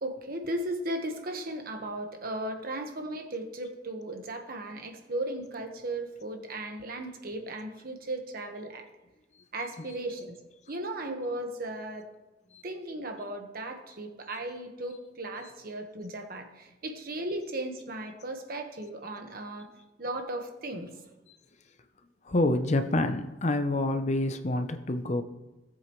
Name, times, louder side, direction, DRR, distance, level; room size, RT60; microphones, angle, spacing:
voice 1, 0.0-8.9 9.5-10.3 10.7-12.1 12.6-19.7 20.0-20.9, right 1 dB, 50° right, 4 dB, 1.3 m, -36 dB
voice 2, 22.3-25.2, left 2 dB, 35° left, 8 dB, 0.6 m, -27 dB
18.0 x 7.7 x 3.1 m, 1.1 s
head